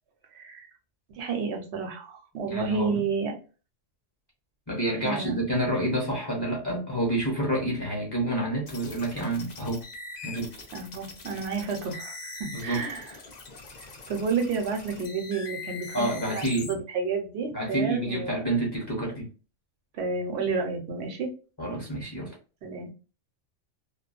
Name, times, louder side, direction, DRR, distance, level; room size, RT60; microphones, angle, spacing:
voice 1, 0.3-0.7 1.1-3.3 5.0-5.4 10.2-10.3 10.7-13.1 13.8-16.4 16.7-18.4 19.9-21.3 22.6-22.9, right 5 dB, 65° right, 0.9 m, -31 dB
voice 2, 2.5-3.0 4.7-9.8 10.2-10.5 12.5-12.8 15.9-16.7 17.5-19.3 21.6-22.3, right 1 dB, 25° left, 0.8 m, -28 dB
sound 1, 8.7-16.7, left 3 dB, 55° left, 0.5 m, -42 dB
2.3 x 2.2 x 2.5 m
omnidirectional pair, 1.3 m